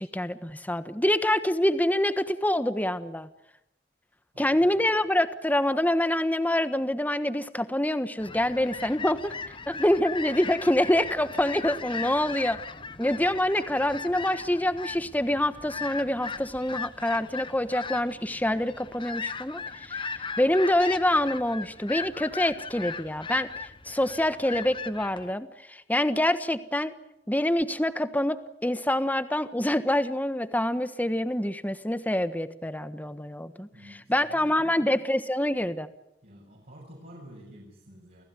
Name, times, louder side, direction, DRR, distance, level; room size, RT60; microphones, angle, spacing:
voice 1, 0.0-3.3 4.4-9.3 9.7-12.6 13.0-23.5 23.8-26.9 27.3-33.7 34.1-35.9, left 1 dB, 10° left, 11 dB, 1.3 m, -26 dB
voice 2, 4.3-5.1 9.6-9.7 33.7-35.0 36.2-38.2, equal, 55° right, -2 dB, 7.2 m, -50 dB
sound 1, 8.2-25.3, left 5 dB, 30° left, 1.0 m, -38 dB
29.5 x 16.5 x 9.8 m, 0.86 s
head